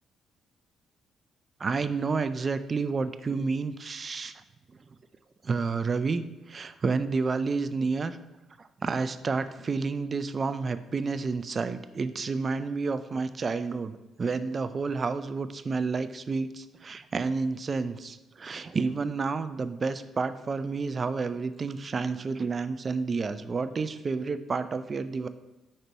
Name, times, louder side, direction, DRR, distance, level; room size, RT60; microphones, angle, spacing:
voice 1, 1.6-4.4 5.4-8.2 8.6-25.3, right 4 dB, 40° right, 12 dB, 0.4 m, -30 dB
5.4 x 3.9 x 4.5 m, 1.1 s
cardioid pair, 90°, 0 cm